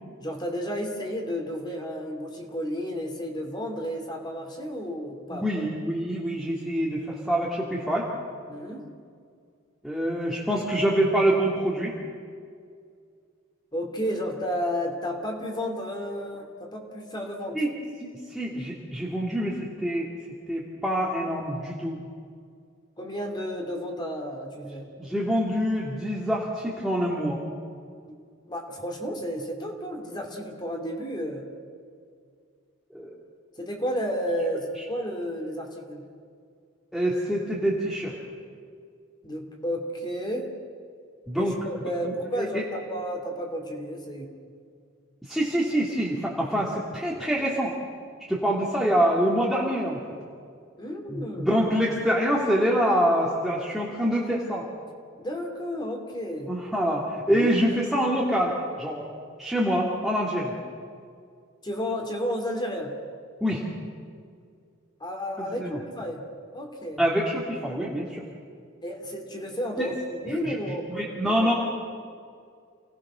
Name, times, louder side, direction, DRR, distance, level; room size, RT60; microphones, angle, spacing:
voice 1, 0.2-5.5 8.5-8.9 13.7-17.6 23.0-24.9 28.5-31.5 33.6-36.1 39.2-40.5 41.4-44.3 50.8-51.5 55.2-56.5 57.3-57.5 61.6-63.0 65.0-66.2 66.5-67.0 68.8-71.5, equal, 25° left, 1 dB, 3.0 m, -32 dB
voice 2, 5.3-8.1 9.8-11.9 17.5-17.7 18.0-20.1 20.5-22.0 25.0-27.4 32.9-33.1 36.9-38.1 41.3-41.5 42.1-42.6 45.2-47.7 48.3-50.0 51.1-54.7 56.5-59.1 59.4-60.6 63.4-63.6 65.4-65.8 67.0-68.2 69.8-69.9 70.4-71.5, equal, ahead, -6 dB, 2.6 m, -26 dB
29.5 x 18.5 x 6.4 m, 2.2 s
head